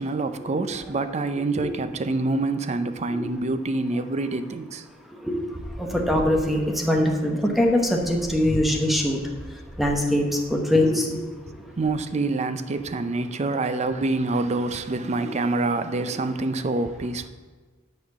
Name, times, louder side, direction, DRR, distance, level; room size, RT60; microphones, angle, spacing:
voice 1, 0.0-4.9 11.8-17.3, right 3 dB, 35° right, 11 dB, 0.4 m, -26 dB
voice 2, 5.8-6.6 6.8-9.2 9.8-10.2 10.5-11.2 15.2-15.3, left 1 dB, ahead, 1 dB, 1.0 m, -22 dB
10.0 x 4.3 x 6.1 m, 1.4 s
head